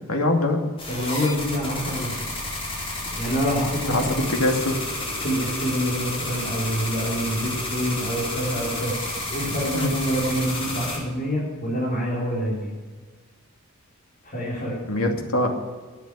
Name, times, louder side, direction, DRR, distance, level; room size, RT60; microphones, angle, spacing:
voice 1, 0.1-0.6 3.8-4.8 9.7-9.9 14.9-15.5, left 1 dB, 75° left, 2 dB, 2.6 m, -23 dB
sound 1, 0.8-11.0, left 1 dB, 25° left, 4.3 m, -31 dB
voice 2, 0.9-2.1 3.2-4.2 5.2-9.0 9.3-12.7 14.2-14.8, equal, 40° left, -6 dB, 4.1 m, -26 dB
12.5 x 9.2 x 9.9 m, 1.4 s
head